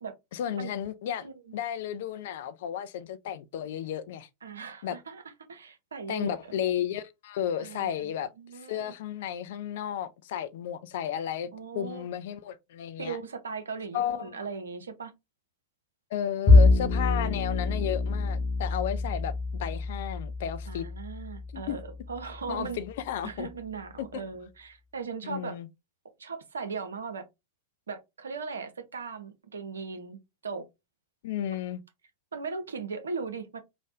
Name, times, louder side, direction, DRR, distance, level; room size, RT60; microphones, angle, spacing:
voice 1, 0.3-1.3 1.5-4.3 4.8-5.0 6.1-8.3 8.7-13.2 13.9-14.4 16.1-20.9 21.5-21.8 22.5-23.5 24.0-24.3 25.2-25.7 31.2-31.8, left 10 dB, 55° left, 0.3 m, -33 dB
voice 2, 1.2-1.5 4.4-5.2 5.5-6.5 7.6-8.1 8.4-8.9 11.5-12.1 13.0-15.1 20.7-22.8 23.2-25.6 26.2-27.3 27.9-30.7 32.3-33.6, right 5 dB, 70° right, 0.5 m, -38 dB
Bowed string instrument, 16.5-22.9, left 3 dB, 35° left, 0.8 m, -25 dB
3.3 x 2.0 x 2.6 m
figure-of-eight pair, 90°, 0 cm